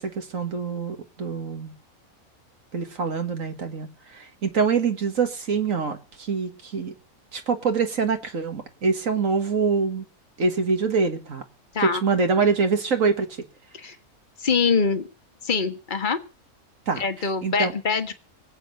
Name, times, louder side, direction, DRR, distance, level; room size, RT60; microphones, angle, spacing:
voice 1, 0.0-1.7 2.7-6.9 7.3-10.1 10.4-11.4 11.8-13.3 16.9-17.0 17.4-17.7, right 5 dB, 65° right, 6 dB, 2.0 m, -25 dB
voice 2, 14.4-15.1 15.4-16.2 17.0-18.1, left 5 dB, 35° left, 9 dB, 1.5 m, -24 dB
20.5 x 8.4 x 6.7 m, 0.33 s
omnidirectional pair, 1.5 m